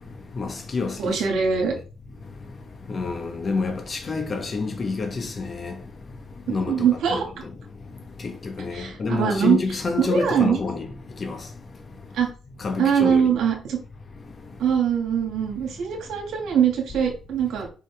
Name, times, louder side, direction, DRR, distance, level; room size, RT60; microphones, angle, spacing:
voice 1, 0.4-1.1 2.9-5.7 6.5-6.8 7.1-7.2 8.6-10.9 11.2-11.4 12.6-13.3, left 4 dB, 40° left, 1.3 m, -27 dB
voice 2, 1.0-1.7 6.5-7.3 8.7-9.6 10.0-10.6 12.1-12.3 12.8-13.8 14.6-17.7, right 7 dB, 75° right, 2.1 m, -22 dB
5.5 x 4.9 x 3.5 m
cardioid pair, 90°, 0 cm